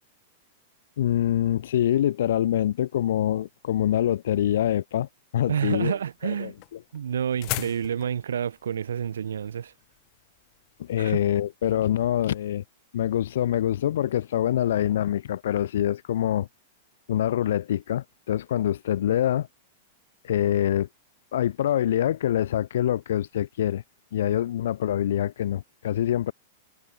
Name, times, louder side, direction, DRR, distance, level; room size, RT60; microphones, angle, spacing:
voice 1, 1.0-5.1 5.3-6.0 6.2-6.5 10.8-12.6 12.9-16.5 17.1-19.5 20.2-20.9 21.3-23.8 24.1-26.3, left 11 dB, 60° left, 0.4 m, -25 dB
voice 2, 5.5-6.5 6.9-9.7 11.0-11.2, right 8 dB, 70° right, 0.7 m, -29 dB
sound 1, 5.9-10.9, left 31 dB, 45° left, 0.8 m, -38 dB
figure-of-eight pair, 100°, 0 cm